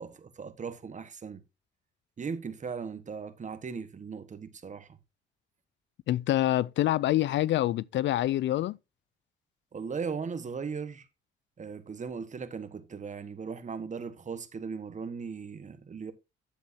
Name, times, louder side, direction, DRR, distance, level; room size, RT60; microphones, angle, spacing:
voice 1, 0.0-1.4 2.2-4.9 9.7-11.0 11.6-16.1, right 5 dB, 40° right, 1.4 m, -38 dB
voice 2, 6.1-8.8, left 14 dB, 65° left, 0.4 m, -26 dB
10.5 x 8.0 x 2.7 m
cardioid pair, 90°, 20 cm